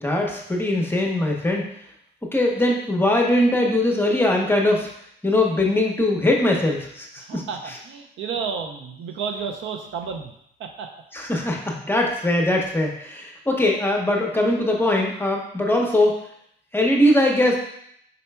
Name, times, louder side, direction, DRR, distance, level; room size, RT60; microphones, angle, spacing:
voice 1, 0.0-1.6 2.3-4.9 5.2-7.4 11.1-16.2 16.7-17.6, left 1 dB, 10° left, 0 dB, 0.8 m, -21 dB
voice 2, 7.2-10.3 10.6-10.9, right 6 dB, 75° right, 4 dB, 0.6 m, -31 dB
4.2 x 4.0 x 2.2 m, 0.71 s
cardioid pair, 90°, 20 cm